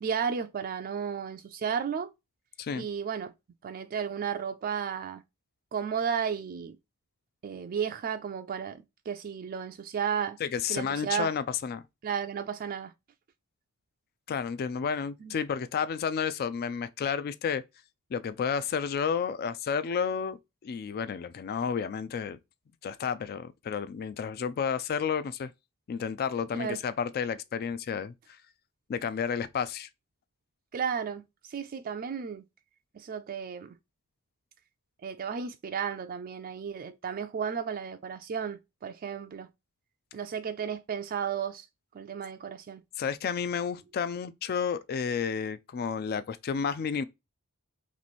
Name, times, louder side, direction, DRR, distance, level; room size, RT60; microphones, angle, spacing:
voice 1, 0.0-2.1 2.7-3.3 3.6-5.2 5.7-6.8 7.4-10.4 10.7-11.3 12.0-12.9 15.2-15.3 26.5-26.8 30.7-32.4 32.9-33.8 35.0-39.5 40.1-41.7 41.9-42.8, right 7 dB, 40° right, 0.3 m, -33 dB
voice 2, 10.4-11.8 14.3-17.6 18.1-20.4 20.6-22.4 22.8-25.5 25.9-28.4 28.9-29.9 43.0-47.0, left 6 dB, 45° left, 0.3 m, -31 dB
3.0 x 3.0 x 4.1 m
head